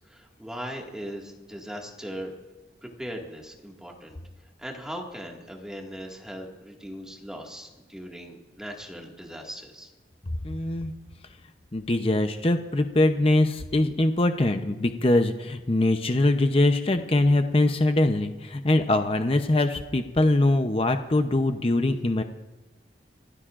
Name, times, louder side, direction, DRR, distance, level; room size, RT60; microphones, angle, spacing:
voice 1, 0.1-2.3 2.8-4.2 4.6-9.9, equal, 5° right, 0 dB, 1.9 m, -39 dB
voice 2, 10.4-10.9 11.7-22.2, left 2 dB, 30° left, 7 dB, 0.7 m, -23 dB
25.5 x 17.0 x 2.5 m, 1.2 s
head